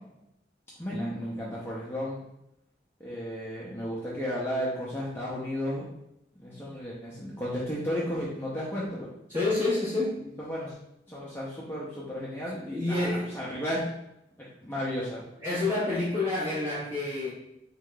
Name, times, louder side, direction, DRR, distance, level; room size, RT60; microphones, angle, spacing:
voice 1, 0.8-2.2 3.0-5.8 6.4-9.1 10.2-10.7 11.1-13.1 13.3-13.8 14.6-15.2, equal, 15° left, -6 dB, 0.5 m, -33 dB
voice 2, 9.3-10.1 12.7-13.3 15.4-17.3, left 2 dB, 30° right, -12 dB, 1.3 m, -28 dB
3.6 x 3.4 x 2.2 m, 0.83 s
head